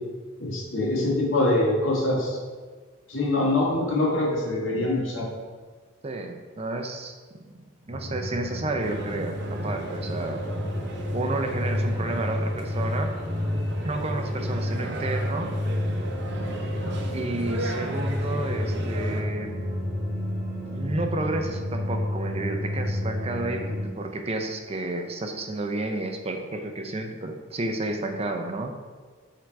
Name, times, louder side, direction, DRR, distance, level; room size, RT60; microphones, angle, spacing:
voice 1, 0.4-2.4 3.1-5.3, left 2 dB, 90° left, -3 dB, 1.8 m, -24 dB
voice 2, 6.0-7.1 7.5-10.4 11.1-13.1 13.8-15.5 17.1-19.5 20.7-28.7, right 2 dB, 30° right, 5 dB, 0.6 m, -31 dB
sound 1, 7.9-23.9, left 1 dB, 50° left, 1.6 m, -30 dB
sound 2, 8.8-19.2, right 2 dB, 60° right, 0.8 m, -36 dB
8.0 x 3.9 x 4.6 m, 1.5 s
head